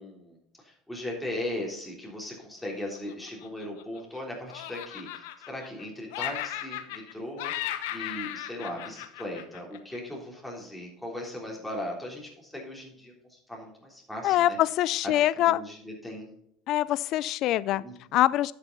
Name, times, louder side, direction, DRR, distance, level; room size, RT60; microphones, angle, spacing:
voice 1, 0.0-14.6 15.3-16.3 17.7-17.9, left 1 dB, 5° left, -2 dB, 3.5 m, -38 dB
Laughter, 2.9-4.2 4.5-5.8 6.1-7.1 7.4-10.0, left 13 dB, 80° left, 0.9 m, -36 dB
voice 2, 14.2-15.6 16.7-17.8 18.1-18.5, left 14 dB, 60° left, 19 dB, 0.4 m, -24 dB
11.5 x 6.8 x 4.1 m, 0.72 s
supercardioid pair, 105°, 0 cm